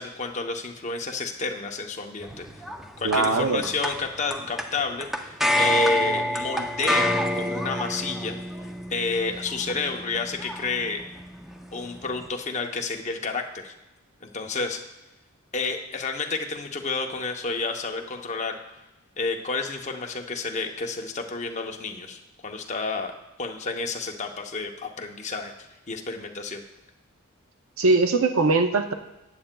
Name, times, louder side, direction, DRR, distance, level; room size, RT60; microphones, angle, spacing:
voice 1, 0.0-2.5 3.0-8.4 8.9-11.0 11.7-13.7 14.2-14.8 15.5-18.6 19.2-23.1 23.4-25.5 25.9-26.6, left 3 dB, 30° left, 3 dB, 0.7 m, -30 dB
sound 1, 2.2-12.3, left 1 dB, ahead, 0.4 m, -29 dB
voice 2, 3.0-3.6 27.8-28.9, right 3 dB, 70° right, 6 dB, 0.6 m, -21 dB
14.5 x 8.9 x 2.2 m, 0.97 s
head